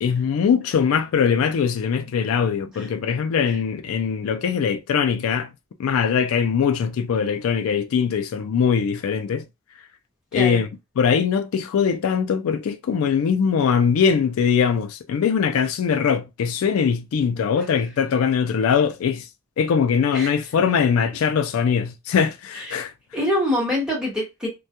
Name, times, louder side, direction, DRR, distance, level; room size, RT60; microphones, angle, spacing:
voice 1, 0.0-5.5 5.8-9.4 10.3-10.7 11.0-19.3 19.6-22.9, left 6 dB, 75° left, 0.3 m, -21 dB
voice 2, 23.1-24.5, left 1 dB, 5° right, 1.0 m, -25 dB
2.2 x 2.2 x 2.8 m
head